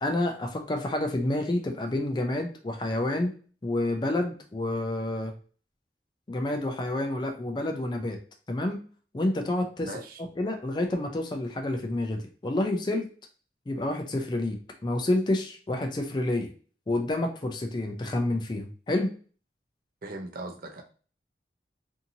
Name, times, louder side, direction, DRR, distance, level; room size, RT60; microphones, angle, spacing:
voice 1, 0.0-3.3 3.6-5.3 6.3-8.2 8.5-8.8 9.1-9.9 10.4-13.1 13.7-16.5 16.9-19.1, left 1 dB, 25° left, 3 dB, 0.4 m, -29 dB
voice 2, 9.8-10.2 20.0-20.8, right 2 dB, 55° right, 3 dB, 0.5 m, -39 dB
2.7 x 2.6 x 2.6 m, 0.40 s
head